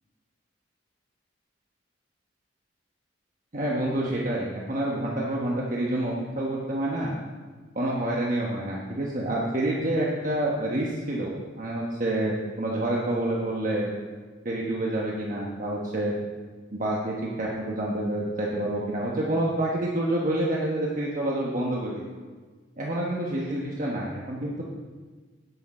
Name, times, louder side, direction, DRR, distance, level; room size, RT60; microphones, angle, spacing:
voice 1, 3.5-7.1 7.7-11.3 11.6-13.9 14.4-16.2 16.7-22.0 22.8-24.6, right 1 dB, 45° right, -3 dB, 1.1 m, -28 dB
11.0 x 8.6 x 4.3 m, 1.4 s
head